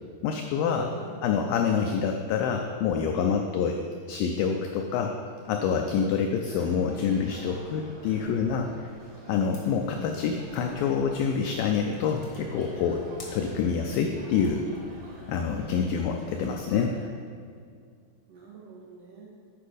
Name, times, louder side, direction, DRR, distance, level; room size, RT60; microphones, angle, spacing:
voice 1, 0.2-0.9 1.2-3.8 4.1-5.1 5.5-8.7 9.3-13.0 13.3-14.7 15.3-17.0, left 6 dB, 90° left, 3 dB, 2.0 m, -27 dB
voice 2, 0.8-1.6 3.2-3.5 5.9-6.1 18.3-19.3, right 4 dB, 80° right, -3 dB, 1.8 m, -45 dB
sound 1, 6.5-17.1, right 1 dB, 65° right, 1.0 m, -47 dB
sound 2, 9.5-15.8, left 1 dB, 65° left, 0.8 m, -50 dB
8.6 x 5.1 x 5.0 m, 2.2 s
omnidirectional pair, 4.5 m